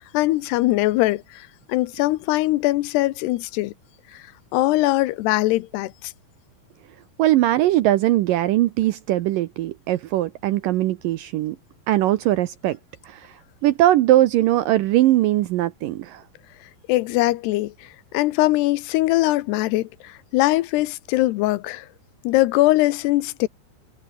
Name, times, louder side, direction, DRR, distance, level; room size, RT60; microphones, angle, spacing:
voice 1, 0.0-3.7 4.1-4.2 4.5-6.1 16.9-17.7 18.1-21.9 22.2-23.5, left 18 dB, 90° left, 2.9 m, -21 dB
voice 2, 7.2-11.6 11.9-12.8 13.0-16.2, right 14 dB, 75° right, 2.1 m, -20 dB
omnidirectional pair, 4.7 m